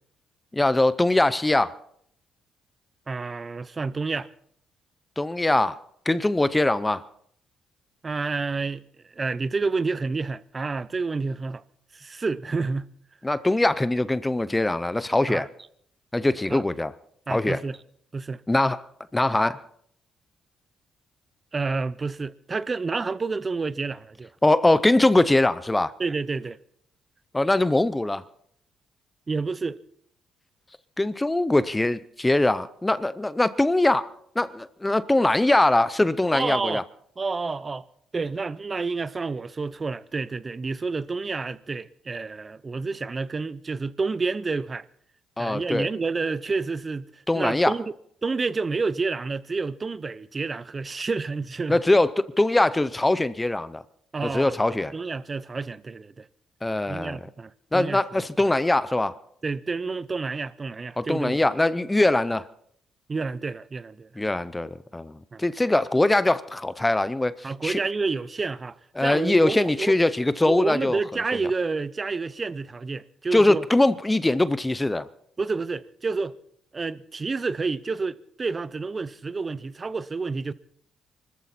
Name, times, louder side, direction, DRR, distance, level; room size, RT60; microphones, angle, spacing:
voice 1, 0.5-1.7 5.2-5.8 6.1-7.0 13.2-15.5 16.1-16.9 17.3-17.6 18.5-18.9 19.1-19.6 24.4-25.9 27.3-28.2 31.0-34.1 34.4-36.8 45.4-45.9 47.3-47.7 51.7-53.8 54.3-54.9 56.6-57.2 57.7-59.2 61.0-62.5 64.2-67.8 69.0-71.0 73.3-75.1, left 2 dB, 15° left, 0.7 m, -22 dB
voice 2, 3.1-4.3 8.0-11.6 11.9-12.9 15.3-15.4 16.5-16.6 17.3-17.8 18.1-18.4 21.5-24.3 26.0-26.6 29.3-29.8 36.3-36.8 37.2-37.9 38.1-44.8 45.4-47.9 48.2-51.8 54.1-56.3 56.9-58.2 59.4-61.4 63.1-64.1 65.3-65.4 67.4-68.8 69.0-70.0 70.5-73.6 75.4-76.4 76.7-80.5, right 4 dB, 30° right, 0.7 m, -29 dB
24.5 x 14.0 x 4.3 m
cardioid pair, 90°, 0 cm